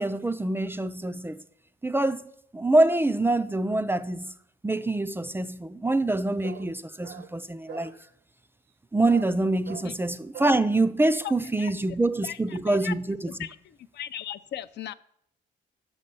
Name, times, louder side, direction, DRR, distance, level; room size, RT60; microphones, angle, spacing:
voice 1, 0.0-1.4 1.8-2.2 2.5-4.3 4.6-7.9 8.9-13.4, right 2 dB, 10° right, 0.3 m, -25 dB
sound 1, 6.4-6.7 7.0-7.3 7.7-8.0 9.1-9.3 9.7-9.9 10.3-10.6, right 9 dB, 55° right, 0.6 m, -42 dB
voice 2, 11.2-11.7 12.2-12.9 13.4-14.9, left 10 dB, 60° left, 0.4 m, -37 dB
6.1 x 5.5 x 6.6 m
cardioid pair, 90°, 20 cm